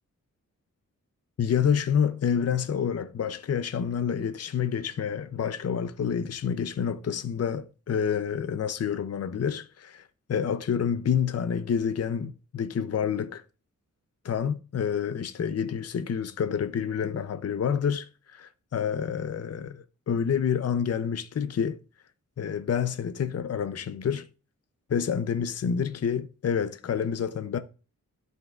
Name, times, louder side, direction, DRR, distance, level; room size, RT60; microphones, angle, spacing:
voice 1, 1.4-13.4 14.2-21.8 22.4-24.3 24.9-27.6, left 7 dB, 50° left, 0.6 m, -28 dB
13.0 x 5.4 x 2.4 m
wide cardioid pair, 120°, 31 cm